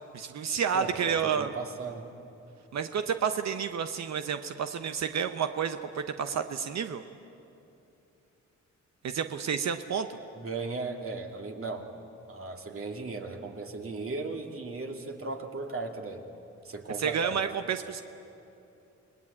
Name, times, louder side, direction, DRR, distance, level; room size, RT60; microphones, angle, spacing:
voice 1, 0.1-1.5 2.7-7.0 9.0-10.2 17.0-18.0, right 7 dB, 65° right, 8 dB, 1.0 m, -30 dB
voice 2, 0.7-2.1 10.3-11.9 12.3-16.2 16.6-17.4, right 3 dB, 50° right, 3 dB, 2.5 m, -36 dB
28.5 x 19.5 x 8.6 m, 2.8 s
cardioid pair, 100°, 29 cm